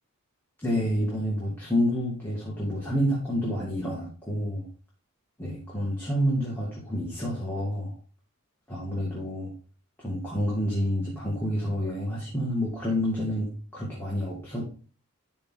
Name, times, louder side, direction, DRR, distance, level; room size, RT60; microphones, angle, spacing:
voice 1, 0.6-4.7 5.4-7.9 8.7-9.5 10.0-14.6, equal, 10° left, -6 dB, 2.1 m, -28 dB
11.5 x 4.6 x 3.7 m, 0.38 s
head